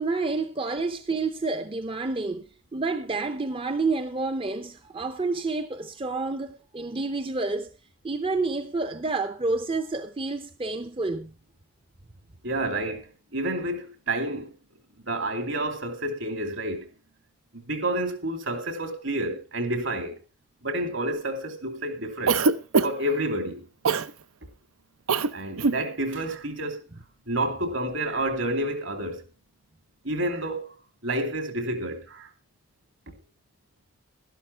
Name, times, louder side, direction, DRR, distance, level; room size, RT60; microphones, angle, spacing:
voice 1, 0.0-7.7 8.0-11.3, right 3 dB, 25° right, 0.6 m, -29 dB
voice 2, 12.4-14.5 15.0-16.9 17.5-20.2 20.6-22.4 22.8-23.7 25.3-26.8 27.3-29.2 30.0-30.8 31.0-32.3, right 1 dB, 65° right, 2.8 m, -29 dB
Cough, 22.3-23.1 23.9-24.1 25.1-25.3 25.6-25.8, right 4 dB, 90° right, 0.7 m, -22 dB
12.5 x 11.5 x 4.5 m
head